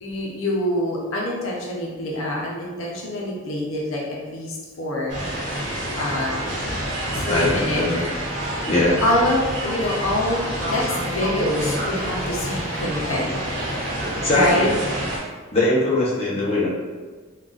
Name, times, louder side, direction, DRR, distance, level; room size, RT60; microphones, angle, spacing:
voice 1, 0.0-5.1 5.9-6.4 7.2-7.8 9.0-13.4 13.7-14.7, left 1 dB, 75° left, -3 dB, 0.6 m, -25 dB
sound 1, 5.1-15.2, right 1 dB, 55° right, 1.0 m, -28 dB
voice 2, 7.3-8.0 8.6-9.0 14.2-14.7 15.5-16.7, left 1 dB, 30° left, -7 dB, 0.7 m, -21 dB
3.7 x 2.3 x 2.3 m, 1.4 s
head